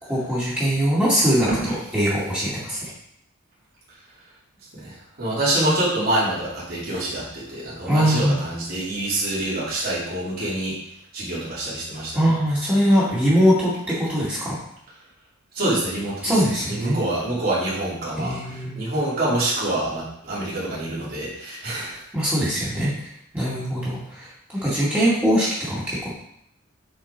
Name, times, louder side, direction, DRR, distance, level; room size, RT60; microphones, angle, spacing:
voice 1, 0.1-2.9 7.9-8.4 12.1-14.6 16.2-17.0 18.2-18.8 22.1-26.1, equal, 10° right, -10 dB, 2.2 m, -22 dB
voice 2, 4.7-10.8 11.1-12.2 15.5-16.3 16.7-22.0, right 1 dB, 45° right, -8 dB, 3.1 m, -26 dB
7.4 x 4.3 x 4.6 m, 0.73 s
head